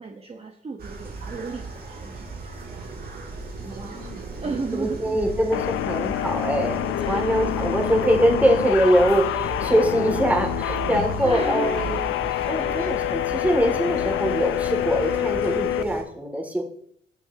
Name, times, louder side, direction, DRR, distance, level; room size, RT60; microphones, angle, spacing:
voice 1, 0.0-3.0 3.7-5.2 7.0-7.3 11.2-12.2 12.6-12.8, right 3 dB, 30° right, 2 dB, 1.2 m, -35 dB
sound 1, 0.8-16.0, right 4 dB, 50° right, 3.2 m, -36 dB
voice 2, 3.6-4.2 4.7-16.6, equal, 5° right, 1 dB, 2.6 m, -23 dB
sound 2, 5.5-15.8, left 13 dB, 85° left, 0.5 m, -27 dB
18.0 x 7.3 x 2.9 m, 0.66 s
cardioid pair, 90°, 20 cm